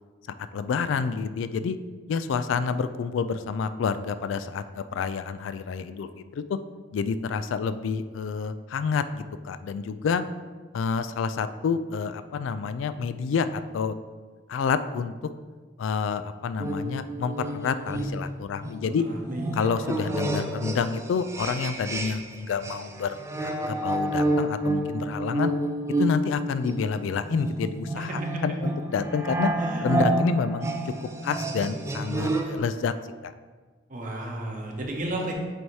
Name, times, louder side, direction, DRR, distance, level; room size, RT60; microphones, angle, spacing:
voice 1, 0.5-1.8 2.1-6.6 6.9-10.2 10.7-13.9 14.5-15.3 15.8-19.1 19.5-25.5 26.0-29.5 29.8-30.9 31.2-32.9 33.2-33.3, left 5 dB, 75° left, 12 dB, 0.3 m, -28 dB
sound 1, 16.6-22.3 22.6-32.6, right 1 dB, 15° right, 0.4 m, -29 dB
voice 2, 19.1-19.5 28.0-28.4 29.6-29.9 33.9-35.3, right 1 dB, 40° right, 0 dB, 1.0 m, -33 dB
7.7 x 2.8 x 4.7 m, 1.4 s
head